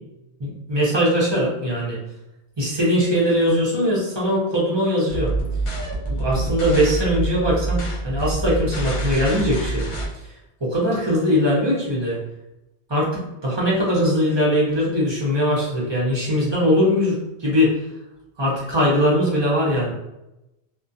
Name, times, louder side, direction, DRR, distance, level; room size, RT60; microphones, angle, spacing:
voice 1, 0.4-2.0 2.6-5.3 6.1-10.0 10.6-12.2 12.9-17.8 18.4-19.9, equal, 30° right, -5 dB, 0.6 m, -21 dB
sound 1, 5.1-10.1, right 2 dB, 45° left, 0.4 m, -26 dB
2.4 x 2.2 x 2.6 m, 0.92 s
omnidirectional pair, 1.1 m